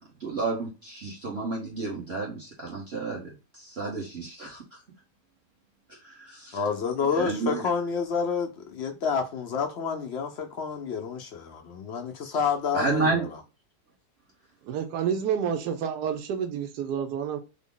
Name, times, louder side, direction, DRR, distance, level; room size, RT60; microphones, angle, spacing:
voice 1, 0.2-3.2 3.6-4.6 6.2-6.6 7.2-7.7 12.7-13.2, right 3 dB, 45° right, 1.1 m, -30 dB
voice 2, 6.5-13.4, left 6 dB, 65° left, 0.6 m, -29 dB
voice 3, 14.7-17.4, right 8 dB, 90° right, 1.2 m, -29 dB
3.6 x 2.0 x 3.7 m
omnidirectional pair, 1.7 m